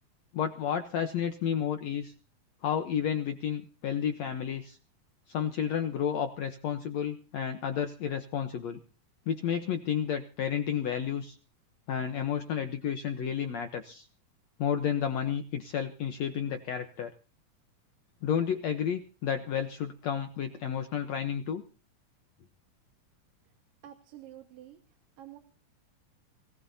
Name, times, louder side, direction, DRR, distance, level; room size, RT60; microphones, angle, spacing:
voice 1, 0.3-2.1 2.6-4.8 5.3-8.8 9.3-11.4 11.9-14.1 14.6-17.1 18.2-21.6, left 8 dB, 65° left, 7 dB, 1.9 m, -31 dB
voice 2, 23.8-24.8 25.2-25.4, right 12 dB, 85° right, 4 dB, 3.2 m, -48 dB
25.5 x 18.5 x 2.8 m, 0.36 s
omnidirectional pair, 3.9 m